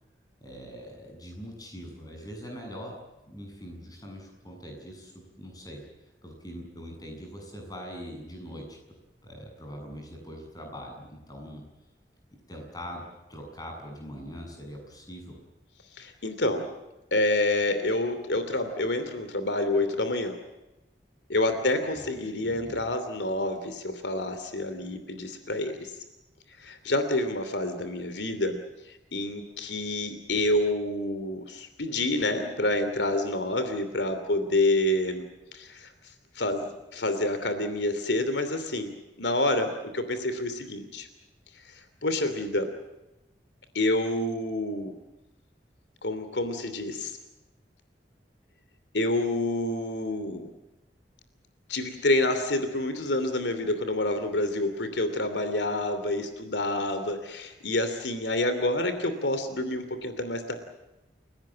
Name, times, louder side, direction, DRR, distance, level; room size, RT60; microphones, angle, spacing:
voice 1, 0.4-5.9 6.2-8.8 9.2-11.7 12.5-13.0 13.3-15.4 21.9-22.1 22.4-22.8, equal, 20° left, 2 dB, 7.6 m, -42 dB
voice 2, 16.0-16.7 17.1-20.4 21.3-25.9 26.6-28.6 28.9-35.3 35.5-35.9 36.3-41.1 41.7-42.7 43.7-44.9 46.0-47.2 48.9-50.5 51.7-60.6, left 1 dB, 90° left, 9 dB, 2.9 m, -28 dB
30.0 x 18.0 x 7.6 m, 0.99 s
head